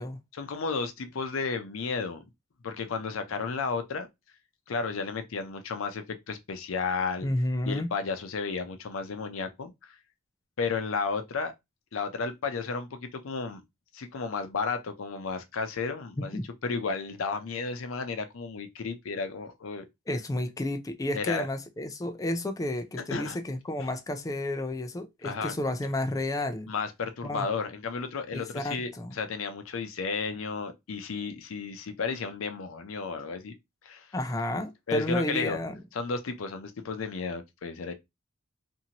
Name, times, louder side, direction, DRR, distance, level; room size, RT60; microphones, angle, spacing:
voice 1, 0.3-2.2 2.6-4.1 4.7-7.3 7.6-10.0 10.6-11.5 11.9-13.6 13.9-19.9 21.1-21.5 23.1-23.4 23.8-23.9 25.2-25.5 26.7-33.5 33.8-34.1 34.9-35.6 36.0-37.9, left 4 dB, 90° left, 0.5 m, -33 dB
voice 2, 7.2-7.9 16.3-16.4 20.1-26.7 27.2-27.5 28.3-29.1 34.1-35.8, left 1 dB, 15° left, 0.3 m, -31 dB
2.7 x 2.5 x 2.8 m
head